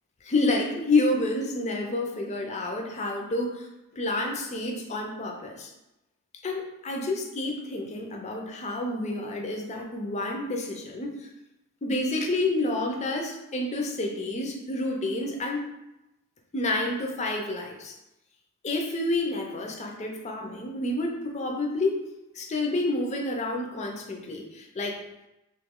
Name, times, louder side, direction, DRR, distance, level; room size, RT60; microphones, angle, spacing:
voice 1, 0.2-3.7 4.0-5.7 6.4-11.2 11.8-15.6 16.5-17.9 18.6-22.0 22.4-25.0, left 2 dB, 35° left, 1 dB, 0.5 m, -29 dB
3.0 x 2.7 x 3.6 m, 0.92 s
head